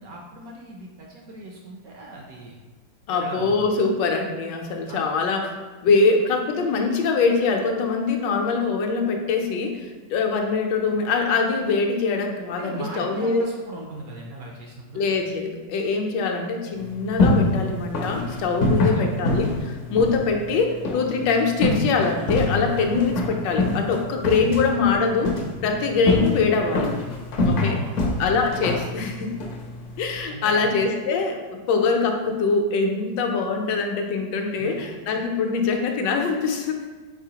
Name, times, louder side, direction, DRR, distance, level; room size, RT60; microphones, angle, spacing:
voice 1, 0.0-2.6 3.1-3.6 4.9-5.0 12.6-15.0 18.9-19.1 27.6-28.2 30.3-30.7 34.6-34.9, right 2 dB, 70° right, -1 dB, 0.9 m, -38 dB
voice 2, 3.1-5.6 5.8-9.8 10.1-13.4 14.9-25.3 25.6-26.9 27.4-27.8 28.2-29.4 30.0-31.4 31.7-36.8, left 4 dB, 80° left, 3 dB, 1.2 m, -23 dB
sound 1, 16.7-30.2, left 2 dB, 65° left, 0.8 m, -26 dB
4.7 x 4.0 x 2.8 m, 1.3 s
omnidirectional pair, 1.9 m